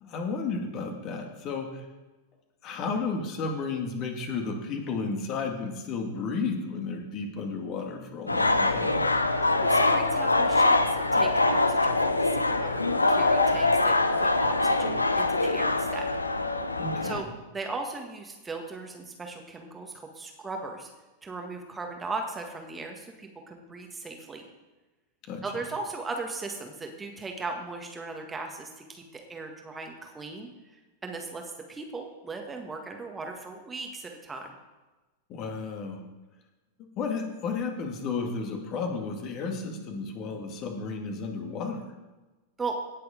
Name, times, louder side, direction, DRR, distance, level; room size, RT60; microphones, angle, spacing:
voice 1, 0.0-1.9 2.6-9.2 16.8-17.3 25.2-25.4 35.3-36.1 36.8-41.9, left 4 dB, 35° left, 3 dB, 2.2 m, -33 dB
sound 1, 8.3-17.2, left 2 dB, 80° left, 0.8 m, -24 dB
voice 2, 9.6-16.1 17.0-17.3 17.5-20.9 21.2-24.4 25.4-30.5 31.0-34.5 42.6-42.8, right 3 dB, 15° right, 3 dB, 1.6 m, -38 dB
18.0 x 6.8 x 5.1 m, 1.2 s
figure-of-eight pair, 90°, 0 cm